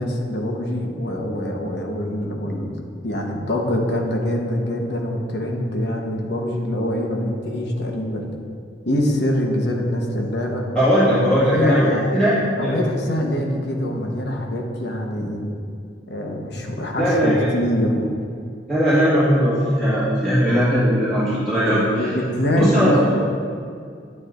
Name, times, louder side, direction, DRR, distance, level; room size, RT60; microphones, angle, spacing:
voice 1, 0.0-8.3 8.8-10.6 11.0-12.1 12.6-15.5 16.1-18.1 22.0-23.2, left 1 dB, 65° left, 1 dB, 1.1 m, -24 dB
voice 2, 10.7-12.8 17.0-17.5 18.7-22.1 22.5-23.0, equal, 5° left, -13 dB, 1.9 m, -19 dB
9.6 x 9.4 x 2.6 m, 2.3 s
head